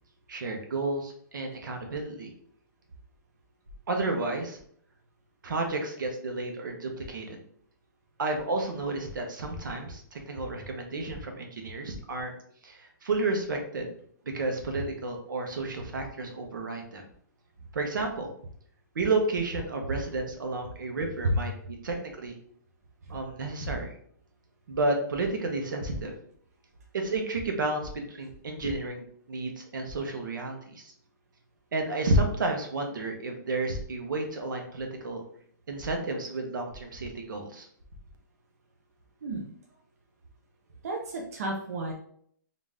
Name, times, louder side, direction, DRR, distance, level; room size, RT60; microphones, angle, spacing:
voice 1, 0.3-2.3 3.9-4.6 5.4-7.4 8.2-12.3 12.6-13.9 14.3-17.0 17.7-18.3 18.9-22.4 23.1-24.0 24.7-26.1 26.9-30.9 31.7-35.2 35.7-37.7, right 2 dB, 75° right, 3 dB, 1.0 m, -31 dB
voice 2, 39.2-39.5 40.8-41.9, right 1 dB, 50° right, 0 dB, 0.7 m, -30 dB
3.8 x 2.6 x 3.5 m, 0.62 s
hypercardioid pair, 175°, 11 cm